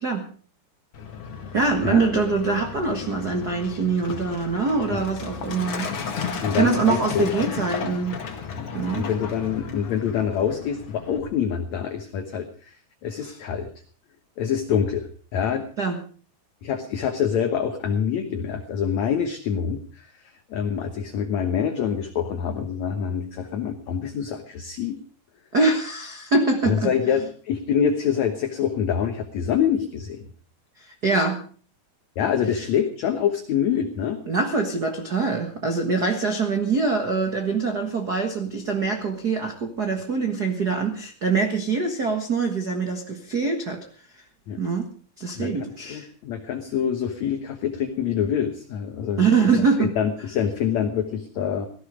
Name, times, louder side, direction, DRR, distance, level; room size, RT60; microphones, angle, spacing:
Truck, 0.9-11.2, left 6 dB, 45° left, 2.4 m, -34 dB
voice 1, 1.5-5.9 6.5-8.2 8.7-9.1 13.2-13.4 15.8-16.0 25.5-26.9 30.8-31.4 34.3-43.8 44.6-44.9 45.2-46.1 49.2-49.9, right 4 dB, 65° right, 4 dB, 0.9 m, -24 dB
voice 2, 6.4-7.3 8.5-13.7 14.4-15.7 16.6-20.1 20.5-25.0 26.6-30.3 32.2-34.2 44.5-44.6 45.4-49.5 49.8-51.7, left 8 dB, 65° left, 6 dB, 2.0 m, -26 dB
17.0 x 14.5 x 5.0 m, 0.42 s
omnidirectional pair, 4.5 m